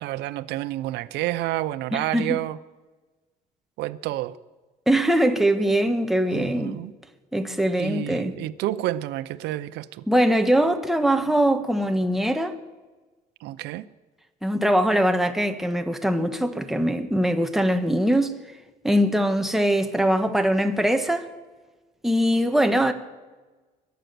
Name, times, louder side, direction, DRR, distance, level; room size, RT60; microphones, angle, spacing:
voice 1, 0.0-2.6 3.8-4.4 6.3-6.9 7.8-10.0 13.4-13.9, right 15 dB, 85° right, 0.6 m, -29 dB
voice 2, 1.9-2.4 4.9-6.8 7.3-8.3 10.1-12.6 14.4-18.4 18.8-21.3 22.0-22.9, right 1 dB, ahead, 1.3 m, -22 dB
22.5 x 9.2 x 6.8 m
cardioid pair, 110°, 17 cm